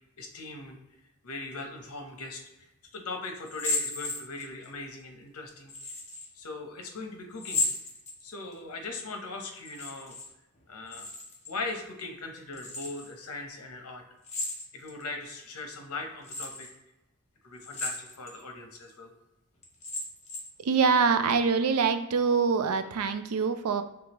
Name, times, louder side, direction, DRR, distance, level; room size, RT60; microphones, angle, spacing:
voice 1, 0.2-0.8 1.2-2.4 2.9-5.9 6.3-7.6 8.2-10.2 10.7-11.1 11.5-14.0 14.7-16.7 17.4-19.1, left 3 dB, 85° left, 3 dB, 0.8 m, -39 dB
sound 1, 3.4-4.7 5.7-6.3 7.4-8.5 9.6-10.3 10.6-11.5 12.5-13.1 14.2-15.0 15.6-15.7 16.2-16.7 17.6-18.4 18.8-18.9 19.6-20.6, left 2 dB, 30° left, 0.8 m, -34 dB
voice 2, 20.6-23.8, right 5 dB, 85° right, 9 dB, 0.4 m, -24 dB
4.9 x 3.4 x 3.0 m, 0.98 s
head